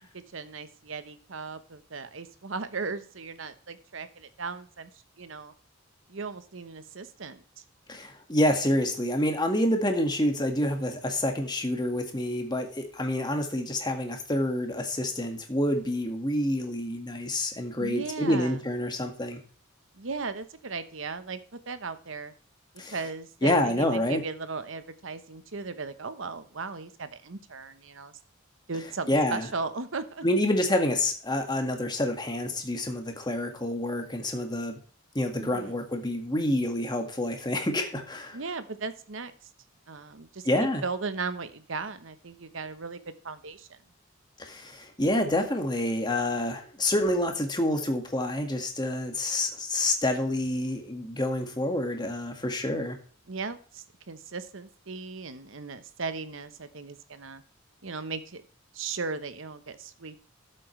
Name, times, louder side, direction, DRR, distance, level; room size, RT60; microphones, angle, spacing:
voice 1, 0.3-4.9 5.2-5.5 6.1-7.4 17.8-18.6 19.9-21.4 21.7-22.3 22.9-28.2 28.7-30.3 35.4-35.8 38.3-39.3 39.9-43.8 53.3-57.4 57.8-58.4 58.7-60.3, right 4 dB, 70° right, 11 dB, 1.0 m, -37 dB
voice 2, 7.9-19.4 22.8-23.0 23.4-24.2 29.1-29.5 30.2-34.8 35.1-38.4 40.4-40.8 44.4-52.9, left 1 dB, 20° left, 4 dB, 1.8 m, -28 dB
13.0 x 7.7 x 3.2 m, 0.43 s
head